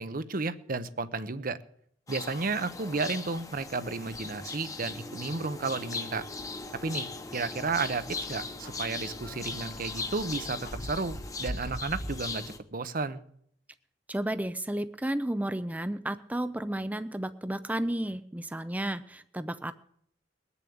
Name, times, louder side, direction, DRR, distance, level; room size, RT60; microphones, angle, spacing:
voice 1, 0.0-1.6 2.1-6.3 6.8-12.4 12.7-13.2, right 3 dB, 50° right, 13 dB, 0.9 m, -33 dB
sound 1, 2.1-12.6, left 3 dB, 20° left, 1.0 m, -38 dB
Clock, 7.3-12.6, left 1 dB, 55° left, 2.3 m, -52 dB
voice 2, 14.1-19.7, right 1 dB, 10° right, 11 dB, 0.5 m, -32 dB
20.5 x 7.0 x 8.6 m, 0.67 s
head